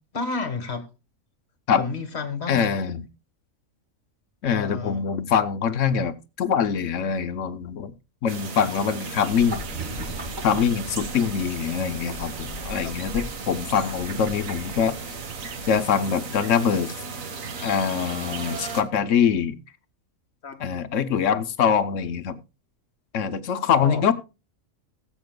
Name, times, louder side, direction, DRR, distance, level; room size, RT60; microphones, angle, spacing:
voice 1, 0.1-0.9 1.8-2.8 4.5-5.1 12.8-12.9 20.4-20.6 23.7-24.1, left 4 dB, 50° left, 1.7 m, -31 dB
voice 2, 2.5-3.1 4.4-7.9 8.2-9.6 10.4-15.2 15.7-16.9 17.6-19.6 20.6-22.4 23.1-24.1, left 7 dB, 65° left, 1.0 m, -24 dB
sound 1, 8.3-18.8, right 4 dB, 70° right, 1.6 m, -36 dB
sound 2, 9.3-15.9, equal, 35° right, 1.8 m, -39 dB
21.0 x 7.3 x 2.2 m
omnidirectional pair, 1.5 m